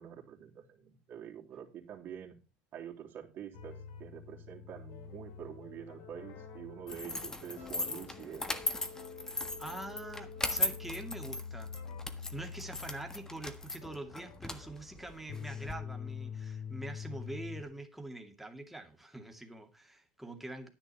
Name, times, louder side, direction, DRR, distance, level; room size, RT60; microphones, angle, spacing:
voice 1, 0.0-2.4 2.7-8.6, right 9 dB, 45° right, 3.4 m, -47 dB
sound 1, 3.5-17.6, left 6 dB, 65° left, 2.9 m, -46 dB
sound 2, 6.9-15.7, left 2 dB, 10° left, 1.4 m, -38 dB
voice 2, 9.2-11.7 12.1-20.7, right 2 dB, 5° right, 2.3 m, -45 dB
10.5 x 10.0 x 4.3 m
supercardioid pair, 125°, 5 cm